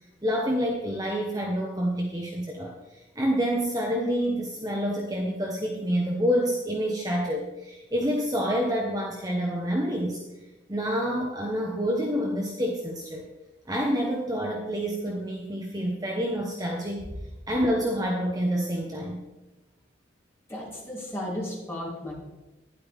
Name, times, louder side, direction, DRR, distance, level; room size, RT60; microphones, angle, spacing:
voice 1, 0.2-10.2 10.7-13.2 13.7-17.1 17.5-19.2, equal, 20° right, -1 dB, 1.0 m, -28 dB
voice 2, 20.5-22.1, left 1 dB, 15° left, -6 dB, 3.5 m, -34 dB
12.0 x 10.5 x 3.6 m, 1.1 s
head